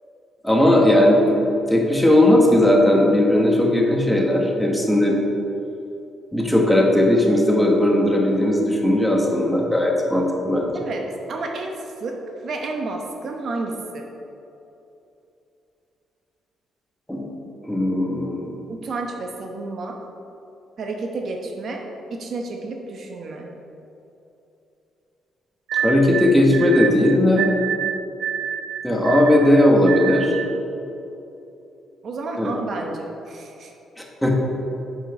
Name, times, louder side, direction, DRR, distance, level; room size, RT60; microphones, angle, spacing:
voice 1, 0.4-1.4 1.7-5.1 6.3-10.8 17.1-17.3 17.6-18.6 25.7-27.5 28.8-30.4 32.4-32.5 34.2-34.3, left 1 dB, 5° left, -1 dB, 1.5 m, -17 dB
voice 2, 10.7-14.1 18.7-20.0 20.8-23.5 32.0-33.7, right 3 dB, 60° right, 2 dB, 0.9 m, -31 dB
sound 1, 25.7-30.6, right 8 dB, 75° right, 0.3 m, -27 dB
7.2 x 5.8 x 5.9 m, 2.8 s
cardioid pair, 90°, 0 cm